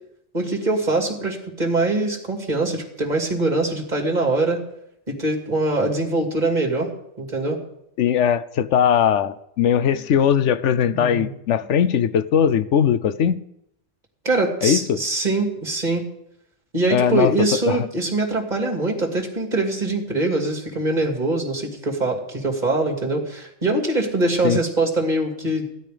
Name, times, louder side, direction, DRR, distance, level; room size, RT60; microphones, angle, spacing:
voice 1, 0.3-4.6 5.1-6.9 7.2-7.6 10.9-11.3 14.2-16.1 16.7-25.7, right 2 dB, 40° right, 2.7 m, -23 dB
voice 2, 8.0-13.4 14.6-15.0 16.9-17.3 17.7-17.9 24.4-24.6, left 8 dB, 80° left, 1.0 m, -19 dB
17.5 x 12.5 x 5.1 m
omnidirectional pair, 1.2 m